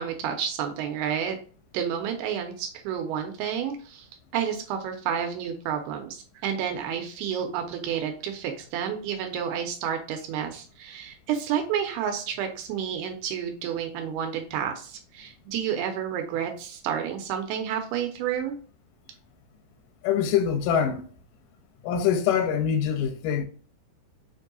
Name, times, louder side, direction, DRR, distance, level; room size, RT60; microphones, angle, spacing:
voice 1, 0.0-1.4 1.7-4.1 4.3-18.6, right 8 dB, 85° right, 2.6 m, -30 dB
voice 2, 20.0-21.1 21.8-23.5, left 8 dB, 80° left, 2.0 m, -24 dB
6.0 x 2.6 x 2.6 m
omnidirectional pair, 4.5 m